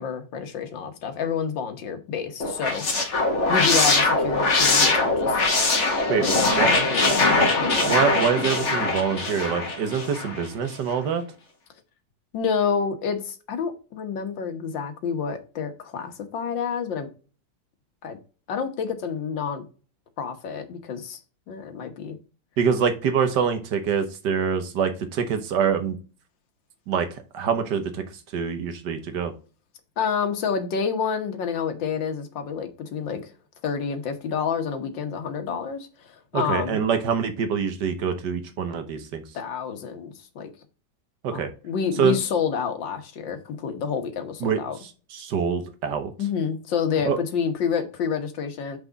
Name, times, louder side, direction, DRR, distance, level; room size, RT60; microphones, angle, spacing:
voice 1, 0.0-3.2 3.5-5.4 6.2-7.9 12.3-17.1 18.0-18.2 18.5-19.6 20.2-21.2 21.5-22.2 30.0-33.3 33.6-36.8 39.3-40.5 41.3-44.8 46.2-48.8, left 6 dB, 85° left, 7 dB, 1.9 m, -29 dB
sound 1, 2.4-10.5, left 3 dB, 40° left, 1.6 m, -22 dB
voice 2, 7.8-11.2 22.6-26.0 26.9-28.0 28.3-29.3 36.3-39.2 41.2-41.5 42.0-42.2 44.4-44.6 45.1-46.1 47.0-47.2, right 7 dB, 70° right, 8 dB, 1.6 m, -25 dB
6.0 x 4.8 x 3.9 m, 0.35 s
omnidirectional pair, 2.0 m